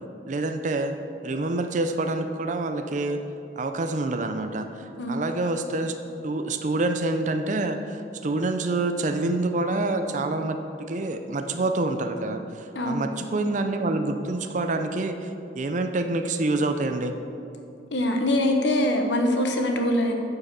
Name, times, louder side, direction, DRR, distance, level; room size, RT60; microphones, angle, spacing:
voice 1, 0.3-0.9 1.2-3.2 3.6-5.9 6.2-17.2, right 2 dB, 45° right, 6 dB, 0.5 m, -27 dB
voice 2, 17.9-20.1, left 1 dB, 85° left, 4 dB, 1.1 m, -23 dB
9.5 x 5.9 x 6.8 m, 2.7 s
head